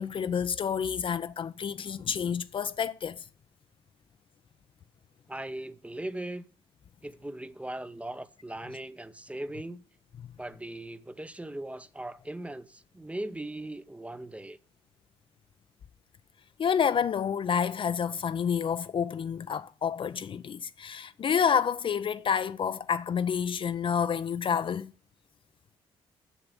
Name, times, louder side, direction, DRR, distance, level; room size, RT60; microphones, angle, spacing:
voice 1, 0.0-3.2 16.6-24.9, left 7 dB, 40° left, 0.5 m, -29 dB
voice 2, 5.3-6.4 7.0-9.8 10.4-14.6, right 1 dB, 10° right, 0.7 m, -39 dB
7.2 x 6.8 x 6.7 m
hypercardioid pair, 50°, 13 cm